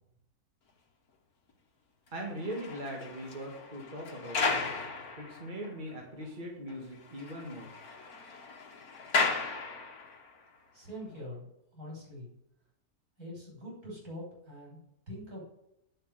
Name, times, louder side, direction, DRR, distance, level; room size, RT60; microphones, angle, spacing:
voice 1, 2.1-4.8 5.2-7.7, equal, 30° right, -1 dB, 2.1 m, -40 dB
sound 1, 2.2-5.9 6.2-6.3 6.7-6.8 7.0-10.3 11.0-11.2, left 4 dB, 70° left, 2.0 m, -35 dB
voice 2, 10.7-11.5 11.7-12.3 13.2-14.8 15.1-15.4, equal, 70° right, -3 dB, 6.5 m, -43 dB
10.5 x 7.6 x 6.7 m, 0.82 s
omnidirectional pair, 1.6 m